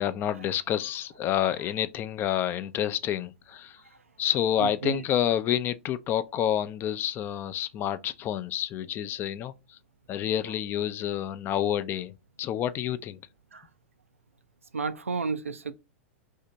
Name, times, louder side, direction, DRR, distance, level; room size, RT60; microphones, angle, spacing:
voice 1, 0.0-3.8 4.2-9.8 10.1-13.2, left 10 dB, 30° left, 0.3 m, -29 dB
voice 2, 4.6-5.0 13.5-13.6 14.7-15.7, right 5 dB, 90° right, 0.4 m, -31 dB
2.8 x 2.6 x 3.2 m
hypercardioid pair, 100°, 7 cm